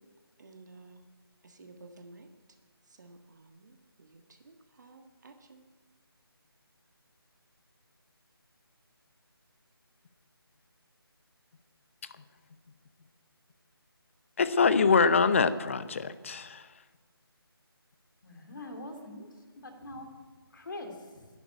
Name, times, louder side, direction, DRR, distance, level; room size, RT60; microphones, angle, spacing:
voice 1, 0.4-1.0 1.4-2.3 2.9-5.6, right 3 dB, 45° right, 5 dB, 1.6 m, -53 dB
voice 2, 14.4-16.6, left 5 dB, 30° left, 13 dB, 0.7 m, -24 dB
voice 3, 18.2-19.3 19.6-20.1 20.5-21.3, left 2 dB, 55° left, 5 dB, 2.9 m, -43 dB
11.5 x 11.0 x 9.1 m, 1.4 s
figure-of-eight pair, 160°, 13 cm